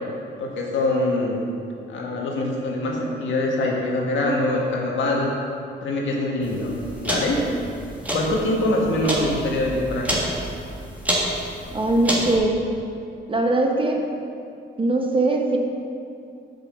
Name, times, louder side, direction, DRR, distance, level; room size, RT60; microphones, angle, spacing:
voice 1, 0.4-1.4 1.9-5.3 5.8-6.7 7.0-7.4 8.1-10.2, left 2 dB, 75° left, -1 dB, 1.6 m, -24 dB
sound 1, 6.4-12.4, equal, 5° right, 1.7 m, -28 dB
voice 2, 11.7-12.7 13.3-14.0 14.8-15.6, right 2 dB, 25° right, 2 dB, 1.0 m, -21 dB
6.8 x 6.1 x 5.0 m, 2.5 s
cardioid pair, 90°, 20 cm